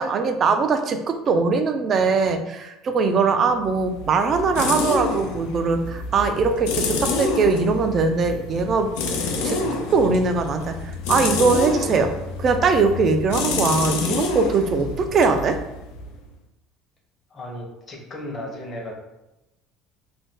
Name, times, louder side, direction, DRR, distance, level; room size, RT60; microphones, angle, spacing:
voice 1, 0.0-8.9 9.4-9.6 9.9-10.8 11.1-12.1 12.4-15.6, right 4 dB, 40° right, 7 dB, 0.3 m, -21 dB
sound 1, 3.6-16.3, left 3 dB, 85° left, 0.4 m, -28 dB
voice 2, 17.3-19.0, left 1 dB, 30° left, 0 dB, 0.8 m, -35 dB
2.6 x 2.2 x 3.6 m, 0.95 s
cardioid pair, 125°, 0 cm